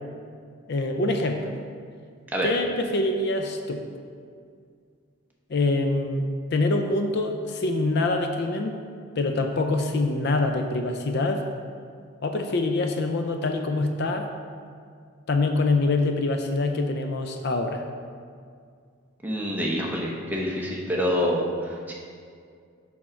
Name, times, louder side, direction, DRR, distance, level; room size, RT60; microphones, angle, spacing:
voice 1, 0.7-1.6 2.4-3.8 5.5-8.9 9.2-11.4 12.2-14.3 15.3-17.8, left 2 dB, 50° left, 5 dB, 0.4 m, -25 dB
voice 2, 19.2-21.9, equal, 10° right, -3 dB, 0.8 m, -27 dB
6.2 x 5.8 x 4.4 m, 2.2 s
head